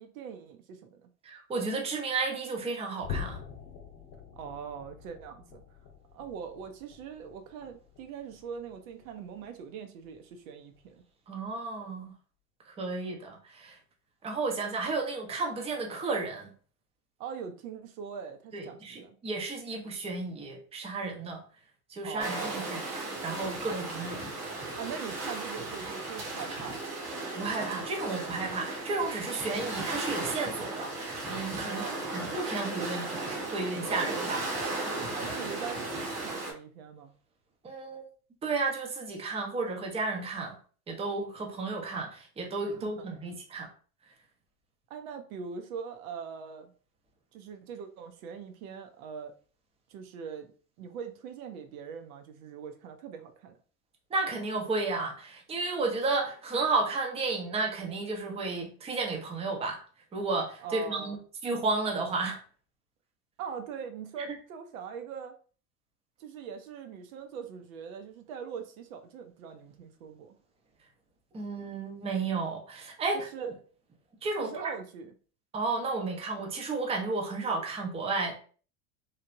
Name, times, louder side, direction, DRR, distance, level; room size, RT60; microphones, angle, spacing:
voice 1, 0.0-1.1 4.4-5.6 6.1-11.0 17.2-19.2 22.0-22.7 23.7-23.8 24.8-26.8 31.5-32.1 35.1-37.1 42.8-43.1 44.9-46.7 47.3-49.3 49.9-53.6 60.6-61.2 63.4-65.3 66.2-70.4 73.3-73.5 74.4-75.1, right 7 dB, 65° right, 6 dB, 0.6 m, -42 dB
voice 2, 1.2-3.4 11.3-12.1 12.7-13.8 14.2-16.5 18.5-21.4 21.9-22.8 23.2-24.2 27.3-31.9 32.1-34.4 37.6-38.1 38.4-40.6 40.9-43.7 54.1-59.8 60.1-61.2 61.4-62.4 71.3-73.5 74.2-74.5 75.5-78.3, right 3 dB, 15° right, 1 dB, 0.6 m, -32 dB
sound 1, 3.0-9.7 10.0-10.3 10.7-10.9 11.4-11.6, left 7 dB, 45° left, 0.7 m, -45 dB
sound 2, 22.2-36.5, right 2 dB, 85° right, 1.1 m, -36 dB
3.1 x 2.1 x 2.4 m, 0.40 s
hypercardioid pair, 90°, 45 cm